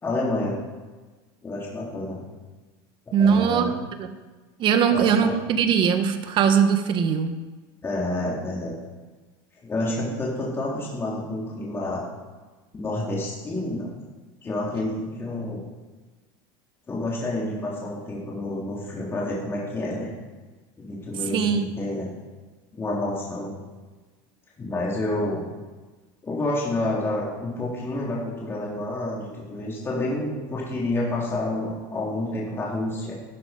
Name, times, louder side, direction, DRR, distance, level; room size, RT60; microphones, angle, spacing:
voice 1, 0.0-0.6 1.4-2.2 3.1-3.7 4.9-5.3 7.8-8.7 9.6-12.0 12.7-13.9 14.4-15.6 16.9-20.1 20.8-22.1 22.7-23.6 24.6-25.4 26.2-33.1, left 2 dB, 20° left, -5 dB, 3.3 m, -29 dB
voice 2, 3.1-3.7 4.0-4.1 4.6-7.4 21.3-21.6, right 7 dB, 40° right, 8 dB, 1.4 m, -20 dB
12.5 x 12.0 x 5.2 m, 1.3 s
supercardioid pair, 130°, 12 cm